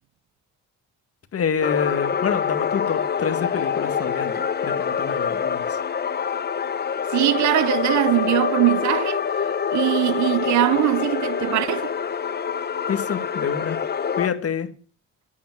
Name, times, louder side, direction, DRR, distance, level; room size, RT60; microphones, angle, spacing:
voice 1, 1.3-5.8 12.9-13.8 14.2-14.7, left 7 dB, 50° left, 1.8 m, -27 dB
sound 1, 1.6-14.3, left 7 dB, 35° left, 0.9 m, -25 dB
voice 2, 7.1-9.2 9.7-11.9, right 16 dB, 70° right, 0.5 m, -21 dB
11.0 x 8.5 x 7.8 m
cardioid pair, 90°, 30 cm